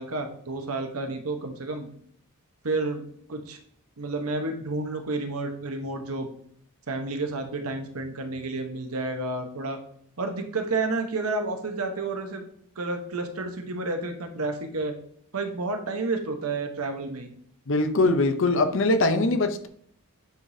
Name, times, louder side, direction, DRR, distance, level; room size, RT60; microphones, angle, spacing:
voice 1, 0.0-1.9 2.6-3.0 3.3-3.6 4.0-6.3 6.9-9.8 10.2-12.4 12.8-14.9 15.3-17.3, right 3 dB, 75° right, 1.0 m, -30 dB
voice 2, 17.7-19.7, left 2 dB, 60° left, 0.7 m, -22 dB
9.1 x 5.0 x 2.7 m
head